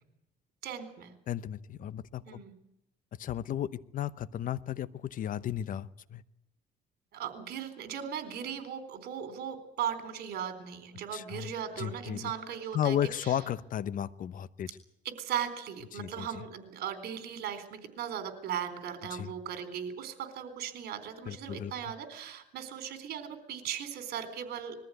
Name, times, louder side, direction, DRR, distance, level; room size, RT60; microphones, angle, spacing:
voice 1, 0.6-1.1 2.3-2.5 7.1-13.4 15.0-24.8, right 9 dB, 70° right, 9 dB, 4.0 m, -38 dB
voice 2, 1.3-2.4 3.2-6.2 11.1-11.5 11.8-12.3 12.7-14.7 15.9-16.4 19.1-19.3 21.2-21.7, left 10 dB, 55° left, 16 dB, 0.9 m, -34 dB
21.5 x 14.5 x 9.3 m, 0.86 s
cardioid pair, 110°, 17 cm